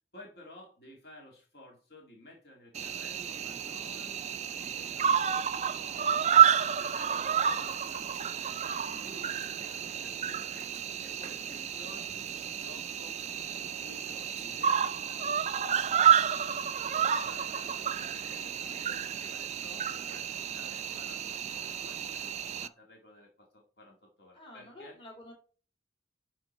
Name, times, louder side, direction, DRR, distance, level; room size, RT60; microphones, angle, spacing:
voice 1, 0.1-4.2 4.7-8.1 8.9-9.4 9.7-13.2 13.7-25.0, left 1 dB, 55° left, 0 dB, 2.0 m, -54 dB
Cricket, 2.7-22.7, right 8 dB, 35° right, 0.3 m, -30 dB
voice 2, 8.8-9.3 24.3-25.3, left 1 dB, 25° left, 0 dB, 2.6 m, -50 dB
11.0 x 3.9 x 4.2 m, 0.40 s
head